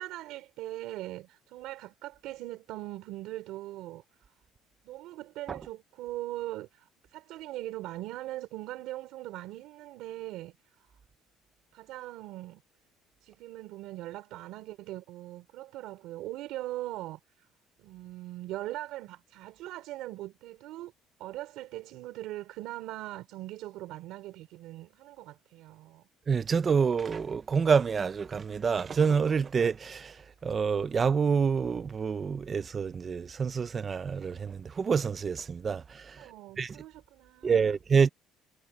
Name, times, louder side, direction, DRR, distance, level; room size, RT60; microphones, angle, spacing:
voice 1, 0.0-4.0 4.8-10.9 11.7-12.6 13.2-17.5 17.8-20.9 21.2-26.0 36.2-37.8, right 16 dB, 65° right, 3.5 m, -41 dB
voice 2, 26.3-36.3 36.6-36.8 37.4-38.1, right 6 dB, 25° right, 0.6 m, -27 dB
cardioid pair, 165°, 0 cm